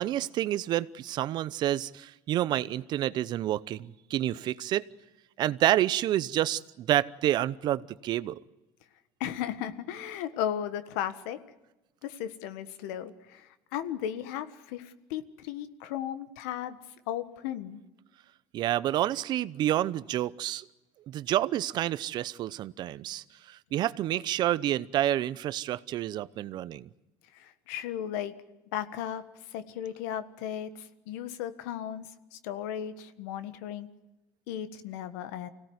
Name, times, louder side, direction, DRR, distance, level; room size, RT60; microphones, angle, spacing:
voice 1, 0.0-4.8 5.4-8.4 18.5-20.6 21.1-26.9, right 13 dB, 55° right, 17 dB, 0.8 m, -29 dB
voice 2, 9.2-11.4 12.0-16.8 17.1-17.8 27.3-28.3 28.7-29.2 29.5-30.7 31.1-33.9 34.5-35.5, left 10 dB, 85° left, 12 dB, 1.5 m, -35 dB
25.0 x 17.5 x 9.5 m, 1.0 s
supercardioid pair, 110°, 9 cm